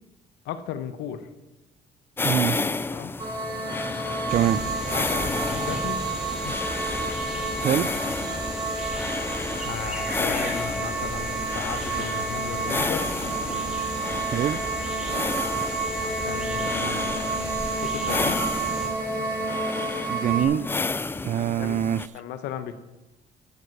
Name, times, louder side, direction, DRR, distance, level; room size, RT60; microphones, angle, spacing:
voice 1, 0.4-1.3 2.9-3.1 4.9-6.1 6.4-6.6 8.2-8.4 9.6-13.1 14.0-14.3 16.0-18.4 18.8-18.9 21.2-21.8 22.1-22.7, left 9 dB, 85° left, 11 dB, 1.0 m, -36 dB
sound 1, 2.2-22.1, left 3 dB, 15° left, 0.4 m, -32 dB
voice 2, 2.2-2.6 4.3-4.6 7.6-7.9 14.3-14.6 20.1-20.7 21.2-22.0, right 10 dB, 45° right, 17 dB, 0.5 m, -24 dB
sound 2, 3.2-20.4, right 3 dB, 25° right, 2.5 m, -30 dB
sound 3, 4.3-18.9, equal, 5° right, 2.2 m, -35 dB
13.5 x 7.9 x 4.7 m, 1.0 s
cardioid pair, 110°, 17 cm